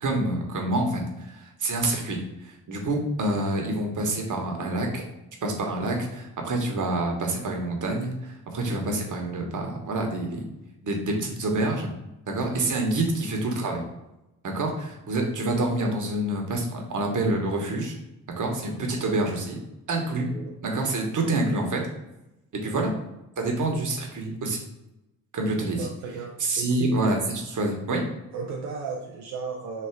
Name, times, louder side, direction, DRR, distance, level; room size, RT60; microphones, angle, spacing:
voice 1, 0.0-5.0 5.4-10.4 10.8-11.9 12.3-13.8 14.4-17.9 18.3-19.6 19.9-20.3 20.6-21.9 22.5-22.9 23.4-24.6 25.3-25.9 26.4-28.1, right 2 dB, 40° right, 1 dB, 1.2 m, -27 dB
voice 2, 25.6-26.9 28.3-29.9, right 5 dB, 75° right, -1 dB, 0.7 m, -35 dB
3.4 x 3.0 x 4.5 m, 0.92 s
hypercardioid pair, 45°, 45 cm